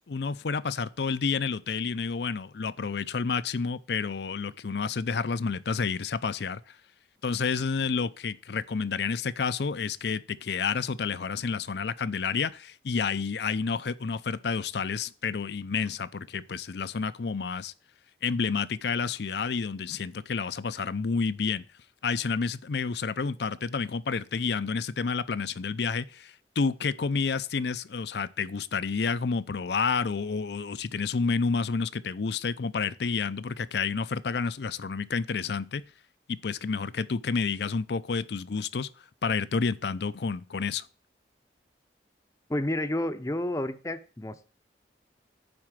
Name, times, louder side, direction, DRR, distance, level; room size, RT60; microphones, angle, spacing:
voice 1, 0.1-6.6 7.2-17.7 18.2-21.6 22.0-35.8 36.3-38.9 39.2-40.9, left 5 dB, 65° left, 0.5 m, -30 dB
voice 2, 42.5-44.6, left 1 dB, 15° left, 0.6 m, -30 dB
9.6 x 4.3 x 7.5 m
head